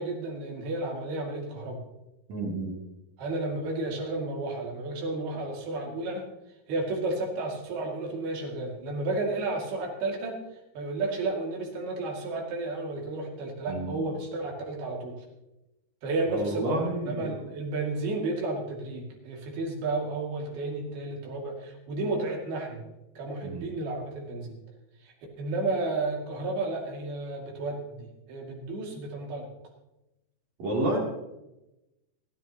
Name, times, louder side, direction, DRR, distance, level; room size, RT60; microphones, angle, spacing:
voice 1, 0.0-1.8 3.2-6.3 6.7-10.4 10.7-15.3 16.0-22.9 23.2-24.6 25.0-29.5, right 2 dB, 70° right, -1 dB, 4.4 m, -32 dB
voice 2, 2.3-2.7 13.7-14.0 16.3-17.4 23.4-23.7 30.6-31.0, right 1 dB, 45° right, -2 dB, 4.1 m, -30 dB
29.0 x 9.9 x 3.0 m, 0.96 s
omnidirectional pair, 4.7 m